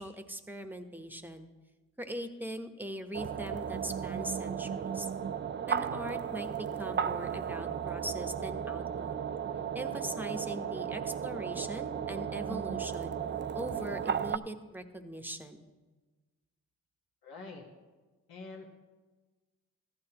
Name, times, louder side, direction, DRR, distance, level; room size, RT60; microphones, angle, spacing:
voice 1, 0.0-1.5 2.0-5.1 5.7-9.3 9.7-13.2 13.5-15.6, equal, 5° right, 7 dB, 1.0 m, -41 dB
sound 1, 3.1-14.4, right 8 dB, 30° right, 0.4 m, -35 dB
voice 2, 17.2-17.7 18.3-18.7, left 3 dB, 75° left, 0 dB, 1.4 m, -45 dB
15.0 x 11.5 x 2.9 m, 1.3 s
cardioid pair, 65°, 37 cm